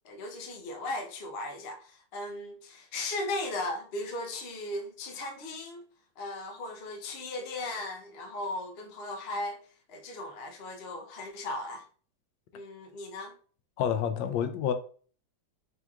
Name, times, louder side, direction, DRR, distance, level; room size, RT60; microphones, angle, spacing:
voice 1, 0.0-5.8 6.2-9.6 9.9-11.8 12.5-13.3, left 2 dB, 55° left, 0.7 m, -37 dB
voice 2, 13.8-14.7, left 8 dB, 85° left, 1.3 m, -28 dB
6.0 x 2.9 x 2.3 m
omnidirectional pair, 2.1 m